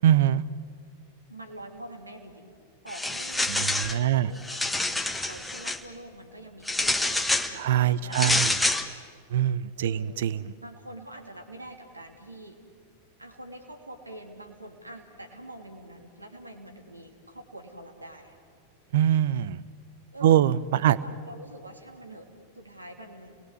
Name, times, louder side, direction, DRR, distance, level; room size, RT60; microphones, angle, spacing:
voice 1, 0.0-0.4 3.5-4.3 7.6-8.5 9.3-10.4 18.9-19.6 20.2-20.6 20.8-21.0, right 11 dB, 55° right, 19 dB, 0.7 m, -23 dB
voice 2, 1.3-2.6 2.8-3.5 3.9-8.9 9.8-10.1 10.6-12.6 13.2-18.4 20.1-20.5 20.8-22.3 22.5-23.3, right 1 dB, 85° right, 3 dB, 2.9 m, -45 dB
sound 1, 2.9-4.0 4.4-5.8 6.7-7.5 8.1-8.9, left 2 dB, 5° left, 1.4 m, -27 dB
30.0 x 20.5 x 8.0 m, 2.1 s
figure-of-eight pair, 90°, 0 cm